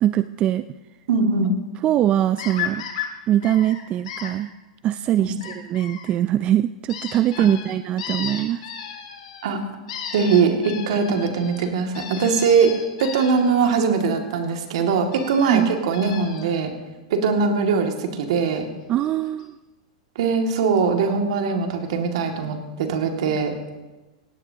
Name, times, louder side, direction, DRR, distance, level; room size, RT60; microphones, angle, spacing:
voice 1, 0.0-0.6 1.8-2.8 3.3-4.5 4.8-8.6 11.1-11.3 15.4-15.7 18.9-19.6, right 12 dB, 35° right, 13 dB, 0.3 m, -22 dB
voice 2, 1.1-1.5 5.2-5.3 9.4-9.6 10.1-12.7 13.0-16.7 17.1-18.7 20.2-23.8, right 5 dB, 70° right, 3 dB, 2.2 m, -21 dB
sound 1, 2.4-3.1 3.4-4.3 5.4-6.1 6.9-9.5 9.9-13.6 15.1-15.6 15.9-16.6 18.6-18.7 19.0-19.1 19.4-19.5, left 9 dB, 70° left, 2.7 m, -34 dB
17.5 x 17.0 x 2.9 m, 1.1 s
hypercardioid pair, 120°, 3 cm